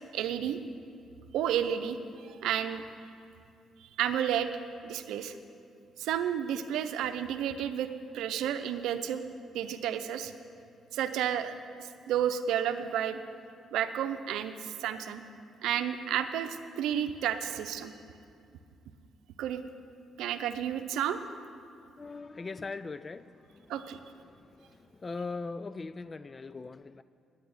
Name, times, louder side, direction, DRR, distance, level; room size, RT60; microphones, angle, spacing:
voice 1, 0.1-0.6 1.3-2.0 2.3-2.8 4.0-4.5 4.8-5.3 6.0-9.2 9.5-10.3 10.9-13.2 13.7-15.2 15.6-17.9 19.4-19.6 20.2-21.2 23.7-24.0, right 9 dB, 85° right, 9 dB, 0.6 m, -31 dB
voice 2, 22.0-23.8 24.2-27.0, left 3 dB, 30° left, 15 dB, 0.3 m, -41 dB
9.4 x 9.1 x 9.6 m, 2.4 s
cardioid pair, 90°, 0 cm